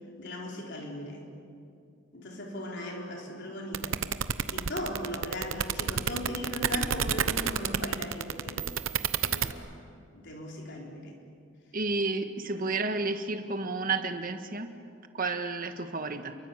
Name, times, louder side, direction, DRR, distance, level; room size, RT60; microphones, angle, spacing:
voice 1, 0.2-1.2 2.1-4.0 4.5-9.8 10.1-11.1 12.5-12.7, left 1 dB, 60° left, 0 dB, 4.4 m, -38 dB
sound 1, 3.7-9.5, right 8 dB, 80° right, 0.9 m, -28 dB
voice 2, 11.7-14.7 15.1-16.4, right 3 dB, 45° right, 7 dB, 1.6 m, -31 dB
29.0 x 23.0 x 7.4 m, 2.5 s
head